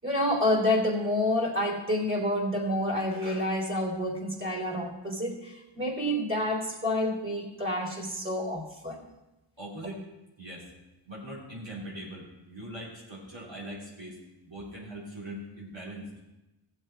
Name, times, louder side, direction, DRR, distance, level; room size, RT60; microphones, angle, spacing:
voice 1, 0.0-9.0, left 1 dB, 25° right, 0 dB, 3.5 m, -28 dB
voice 2, 9.6-10.1 10.4-10.7 11.0-14.2 14.4-16.1, right 1 dB, 65° right, -8 dB, 4.0 m, -41 dB
16.0 x 7.6 x 4.6 m, 0.98 s
wide cardioid pair, 40°, 48 cm